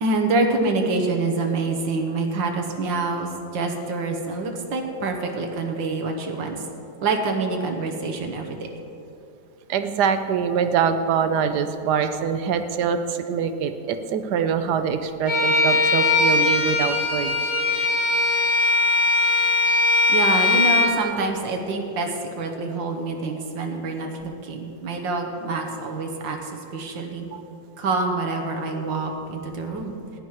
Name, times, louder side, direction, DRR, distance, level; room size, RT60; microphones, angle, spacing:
voice 1, 0.0-6.6 7.0-8.7 20.1-27.3 27.8-30.2, right 3 dB, 85° right, 3 dB, 1.8 m, -26 dB
voice 2, 9.7-17.3 27.3-27.4, right 7 dB, 70° right, 9 dB, 1.2 m, -24 dB
Bowed string instrument, 15.3-21.0, left 3 dB, 80° left, 3.0 m, -20 dB
15.0 x 10.0 x 4.7 m, 2.7 s
omnidirectional pair, 2.0 m